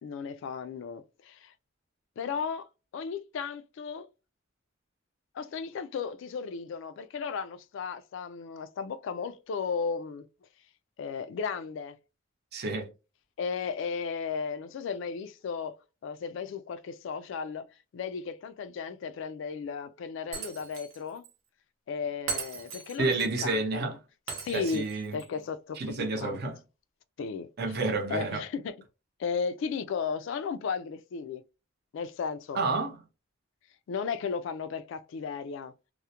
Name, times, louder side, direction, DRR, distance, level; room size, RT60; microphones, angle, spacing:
voice 1, 0.0-1.5 2.2-2.7 2.9-4.1 5.3-10.2 11.0-12.0 13.4-15.8 16.0-17.7 17.9-21.2 21.9-24.0 24.4-24.9 25.1-26.4 27.2-27.8 28.1-28.8 29.2-31.4 31.9-32.6 33.9-35.7, left 5 dB, 65° left, 0.3 m, -35 dB
voice 2, 12.5-12.9 23.0-23.9 24.5-25.2 25.8-26.6 27.6-28.4 32.5-33.0, right 3 dB, 55° right, 0.6 m, -30 dB
Shatter, 20.3-21.0 21.2-21.3 22.3-23.3 24.3-25.3, right 5 dB, 90° right, 0.8 m, -38 dB
2.3 x 2.0 x 2.8 m
head